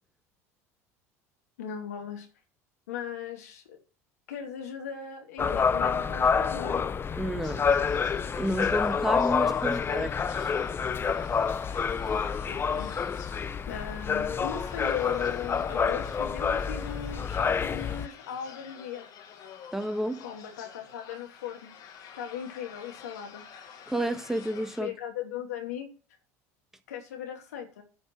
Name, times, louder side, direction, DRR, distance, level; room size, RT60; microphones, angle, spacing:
voice 1, 1.6-2.3 2.9-3.8 4.3-6.9 9.5-10.1 12.5-12.9 13.7-19.1 20.2-21.7 22.1-23.4 24.8-25.9 26.9-27.8, left 9 dB, 80° left, 2.8 m, -38 dB
sound 1, 5.4-18.1, left 6 dB, 30° left, 0.8 m, -28 dB
voice 2, 7.2-7.7 8.4-10.3 19.7-20.2 23.9-24.9, right 1 dB, 5° right, 1.7 m, -30 dB
sound 2, 7.4-24.8, left 7 dB, 55° left, 2.1 m, -49 dB
10.5 x 5.4 x 7.7 m
hypercardioid pair, 75°, 8 cm